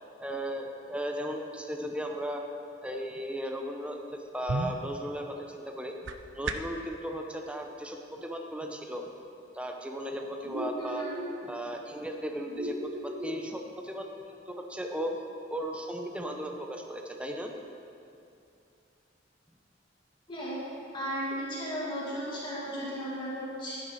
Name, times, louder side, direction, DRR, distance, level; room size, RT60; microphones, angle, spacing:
voice 1, 0.2-2.4 2.8-4.0 4.3-6.0 6.3-9.0 9.5-11.1 11.4-14.1 14.5-15.2 15.5-17.5, equal, 5° right, 3 dB, 0.7 m, -36 dB
sound 1, 4.0-6.9, right 3 dB, 85° right, 0.6 m, -37 dB
sound 2, 10.4-11.3 12.5-13.4, equal, 70° right, 1.8 m, -37 dB
voice 2, 10.8-11.1 20.3-20.6 20.9-23.8, equal, 25° left, -7 dB, 2.3 m, -35 dB
10.5 x 10.5 x 4.2 m, 2.6 s
head